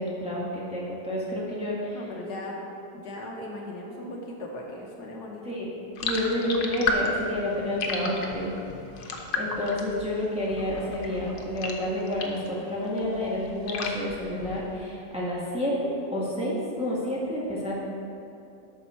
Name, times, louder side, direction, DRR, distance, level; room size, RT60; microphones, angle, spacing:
voice 1, 0.0-2.0 5.4-5.7 6.0-8.5 9.0-17.7, left 1 dB, 5° right, -6 dB, 1.5 m, -29 dB
voice 2, 1.9-2.6 2.9-5.6, left 1 dB, 65° left, -1 dB, 1.5 m, -38 dB
sound 1, 6.0-12.5 12.9-14.9, left 3 dB, 85° left, 1.6 m, -33 dB
11.5 x 6.2 x 4.3 m, 2.7 s
omnidirectional pair, 1.9 m